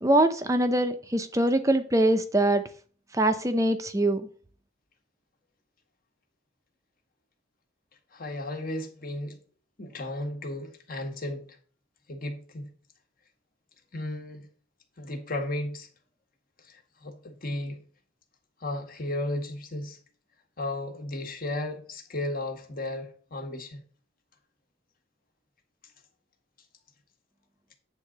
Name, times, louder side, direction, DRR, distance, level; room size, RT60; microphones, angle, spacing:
voice 1, 0.0-2.6 3.1-4.3, right 1 dB, 15° right, 8 dB, 0.7 m, -23 dB
voice 2, 8.1-9.4 9.8-11.4 12.1-12.7 13.9-14.5 15.0-15.9 16.6-17.8 18.6-20.0 20.6-23.8, left 1 dB, 45° left, 3 dB, 1.6 m, -34 dB
9.4 x 3.8 x 6.7 m, 0.43 s
head